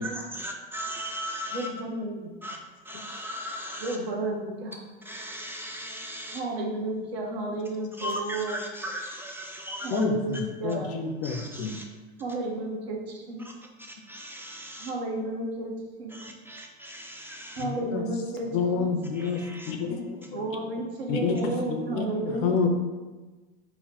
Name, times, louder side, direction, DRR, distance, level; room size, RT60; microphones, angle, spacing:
voice 1, 0.0-1.7 2.4-2.6 2.8-4.0 5.0-6.4 8.0-10.0 11.2-11.9 13.4-13.5 13.8-14.9 16.1-17.6 19.1-19.8, equal, 10° right, 1 dB, 0.3 m, -37 dB
voice 2, 1.5-2.5 3.8-4.8 6.3-8.6 9.8-10.9 12.2-13.5 14.8-15.7 16.0-16.2 17.5-18.5 18.8-18.9 20.3-22.7, right 2 dB, 75° right, -1 dB, 1.0 m, -32 dB
voice 3, 9.9-11.7 17.9-18.0 18.5-19.4 19.7-20.4 21.1-21.4 21.7-22.7, left 5 dB, 45° left, 5 dB, 0.5 m, -28 dB
4.0 x 2.0 x 4.1 m, 1.2 s
hypercardioid pair, 85°, 31 cm